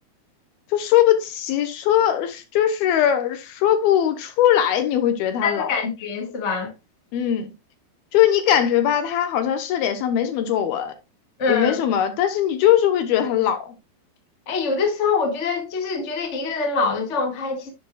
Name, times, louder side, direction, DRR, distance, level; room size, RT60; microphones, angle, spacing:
voice 1, 0.7-5.8 7.1-7.5 8.1-10.9 11.5-13.7, left 11 dB, 75° left, 2.8 m, -20 dB
voice 2, 5.4-6.7 11.4-11.8 14.4-17.7, left 4 dB, 30° left, 1.2 m, -24 dB
11.5 x 7.4 x 2.4 m
omnidirectional pair, 4.7 m